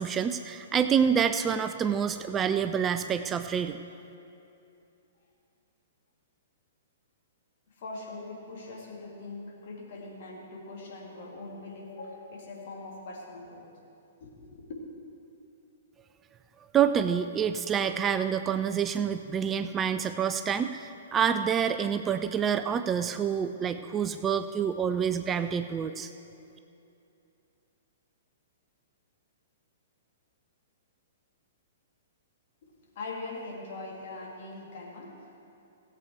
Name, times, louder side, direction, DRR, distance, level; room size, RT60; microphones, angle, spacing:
voice 1, 0.0-3.8 16.7-26.1, right 7 dB, 20° right, 9 dB, 0.4 m, -27 dB
voice 2, 7.7-13.6 14.2-14.7 32.6-35.4, left 2 dB, 50° left, -2 dB, 2.6 m, -42 dB
16.5 x 7.9 x 4.7 m, 2.7 s
figure-of-eight pair, 115°, 0 cm